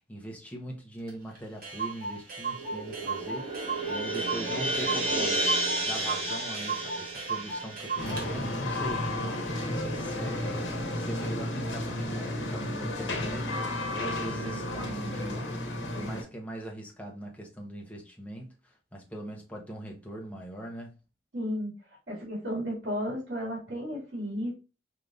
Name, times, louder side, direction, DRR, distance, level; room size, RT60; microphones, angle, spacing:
voice 1, 0.0-9.3 9.6-21.0, right 1 dB, 10° left, 0.9 m, -41 dB
Clock, 1.1-1.2 1.3-1.4 1.6-8.3, right 4 dB, 55° right, 1.4 m, -36 dB
sound 1, 2.5-9.0, right 1 dB, 30° right, 1.5 m, -32 dB
sound 2, 8.0-16.2, left 1 dB, 85° left, 1.0 m, -32 dB
voice 2, 21.3-21.7 22.1-24.5, equal, 70° right, 2.1 m, -33 dB
4.9 x 2.8 x 2.4 m
head